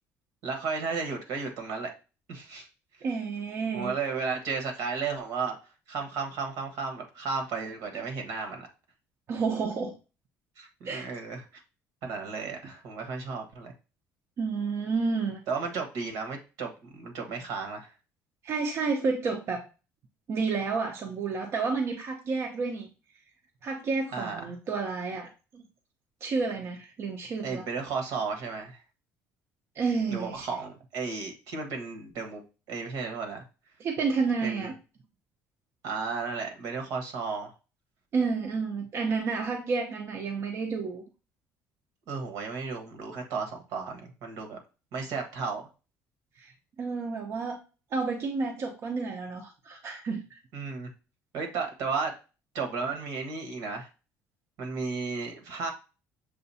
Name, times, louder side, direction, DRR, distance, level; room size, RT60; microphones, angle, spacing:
voice 1, 0.4-1.9 2.3-2.7 3.7-5.6 5.9-8.7 10.6-11.4 12.0-13.7 15.5-17.9 24.1-24.5 27.4-28.8 30.1-32.4 32.7-33.4 34.4-34.7 35.8-37.5 42.1-44.6 44.9-45.7 50.5-50.9 51.3-52.1 52.5-53.9 54.6-55.7, right 4 dB, 75° right, 4 dB, 1.4 m, -34 dB
voice 2, 3.0-3.9 9.3-9.9 10.8-11.1 14.4-15.4 18.4-19.6 20.3-22.9 23.6-25.6 26.2-27.6 29.7-30.5 33.8-34.7 38.1-41.0 46.4-46.5 46.8-47.6 47.9-50.4, right 4 dB, 50° right, 1 dB, 0.8 m, -30 dB
6.8 x 2.6 x 2.7 m, 0.32 s
cardioid pair, 120°, 6 cm